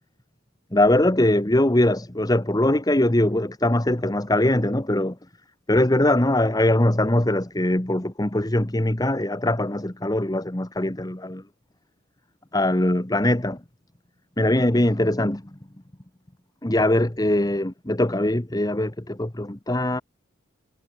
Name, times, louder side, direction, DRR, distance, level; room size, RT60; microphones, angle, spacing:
voice 1, 0.7-5.2 5.7-11.4 12.5-13.6 14.4-15.4 16.6-20.0, left 1 dB, 20° left, 1.2 m, -21 dB
head